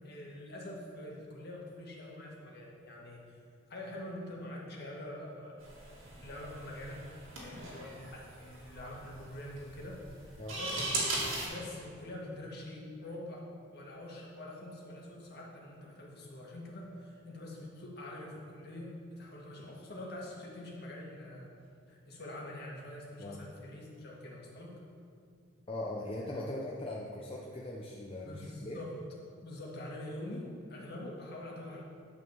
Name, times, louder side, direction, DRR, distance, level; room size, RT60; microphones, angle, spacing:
voice 1, 0.0-3.4 3.7-6.0 6.2-7.0 7.4-10.9 11.5-13.5 13.7-21.5 21.9-24.7 28.3-28.9 29.4-31.8, left 1 dB, 55° left, -3 dB, 1.7 m, -45 dB
sound 1, 5.6-11.5, right 2 dB, 70° right, 2.3 m, -39 dB
voice 2, 25.7-28.8, left 1 dB, 30° left, -4 dB, 0.7 m, -40 dB
11.0 x 4.1 x 7.1 m, 2.4 s
head